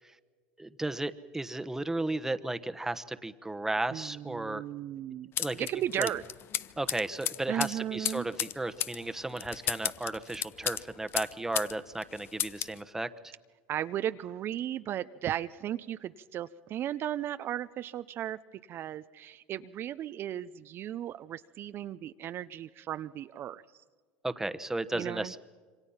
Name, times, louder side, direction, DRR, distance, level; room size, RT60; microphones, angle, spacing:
voice 1, 0.6-4.6 5.4-5.5 6.0-6.1 6.8-13.1 24.2-25.4, right 2 dB, 10° right, 10 dB, 1.2 m, -34 dB
voice 2, 3.9-6.2 7.5-8.3 13.7-18.4 18.7-23.8 24.9-25.4, right 11 dB, 45° right, 11 dB, 0.6 m, -36 dB
sound 1, 5.4-11.7 12.0-12.8, left 11 dB, 45° left, 0.8 m, -34 dB
27.0 x 24.5 x 5.8 m, 1.5 s
hypercardioid pair, 90°, 5 cm